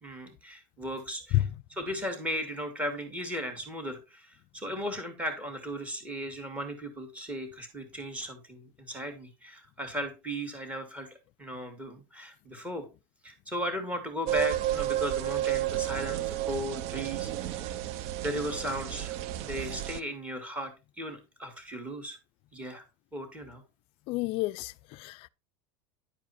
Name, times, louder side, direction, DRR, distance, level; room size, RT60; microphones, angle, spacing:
voice 1, 0.0-11.1 11.4-12.9 13.2-17.8 18.2-22.2 22.5-22.8 23.1-23.6, equal, 10° right, 2.2 m, -36 dB
sound 1, 14.3-20.0, right 13 dB, 50° right, 0.6 m, -32 dB
voice 2, 24.1-25.3, left 17 dB, 45° left, 0.4 m, -29 dB
10.0 x 4.8 x 4.2 m
supercardioid pair, 150°, 14 cm